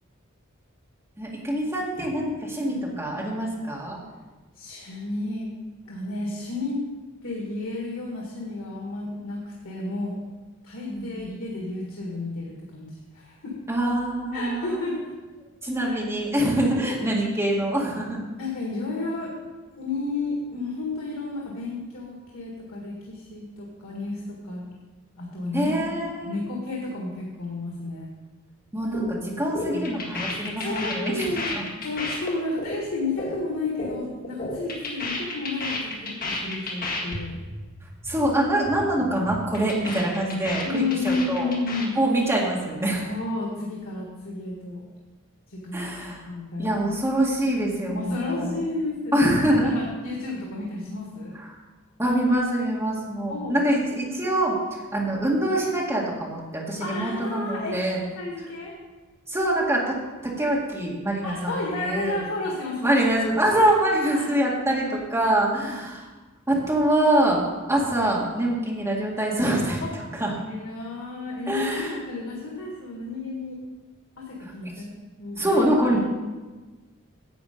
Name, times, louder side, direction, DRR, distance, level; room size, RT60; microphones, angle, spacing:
voice 1, 1.2-4.0 10.9-11.3 13.7-14.8 15.6-18.2 25.5-26.4 28.7-31.3 31.5-31.6 38.1-41.5 42.0-43.1 45.7-46.2 46.6-48.6 49.1-49.8 52.0-54.5 54.9-58.0 59.3-59.9 60.4-62.2 62.8-66.0 66.5-67.4 67.7-69.8 70.2-70.3 71.5-72.0 75.4-76.0, right 1 dB, 15° right, -4 dB, 2.1 m, -24 dB
voice 2, 4.6-5.5 5.9-6.8 7.2-10.2 10.6-13.6 14.3-15.1 15.9-16.1 18.4-19.3 19.7-24.6 25.2-28.1 29.7-29.9 30.3-31.5 31.8-37.4 38.9-39.1 40.6-41.9 43.1-44.9 45.5-46.8 47.9-51.4 53.3-53.7 56.8-58.7 61.2-63.0 64.0-64.3 65.6-65.9 69.8-69.9 70.3-73.6 74.2-75.6 75.9-76.0, left 2 dB, 90° left, -3 dB, 1.8 m, -32 dB
sound 1, 28.9-29.1 29.4-34.0 34.2-37.2 37.4-37.6 37.9-38.2 38.5-38.8 39.1-41.9, left 2 dB, 45° left, 1.8 m, -32 dB
10.5 x 7.7 x 5.2 m, 1.2 s
head